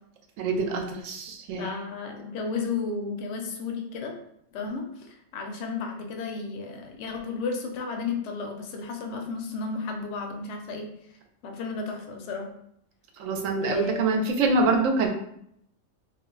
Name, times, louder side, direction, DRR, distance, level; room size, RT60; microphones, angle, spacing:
voice 1, 0.4-1.7 13.2-15.1, right 3 dB, 80° right, 3 dB, 0.9 m, -25 dB
voice 2, 1.6-4.2 4.5-10.9 11.4-12.5 13.6-14.2, left 4 dB, 70° left, 3 dB, 0.9 m, -33 dB
2.5 x 2.1 x 3.7 m, 0.74 s
omnidirectional pair, 1.3 m